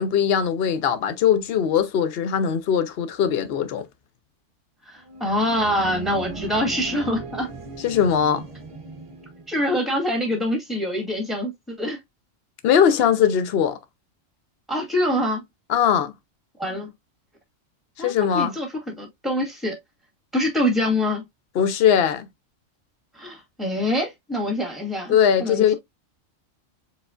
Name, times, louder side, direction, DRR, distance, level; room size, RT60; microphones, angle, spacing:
voice 1, 0.0-3.9 7.8-8.4 12.6-13.8 15.7-16.1 18.0-18.5 21.6-22.3 25.1-25.7, left 8 dB, 55° left, 0.8 m, -20 dB
voice 2, 4.9-7.5 9.5-12.0 14.7-15.4 16.6-16.9 18.0-19.8 20.3-21.2 23.1-25.7, left 1 dB, ahead, 1.9 m, -25 dB
sound 1, 5.0-9.6, right 1 dB, 30° right, 0.7 m, -37 dB
4.7 x 4.3 x 2.4 m
omnidirectional pair, 1.3 m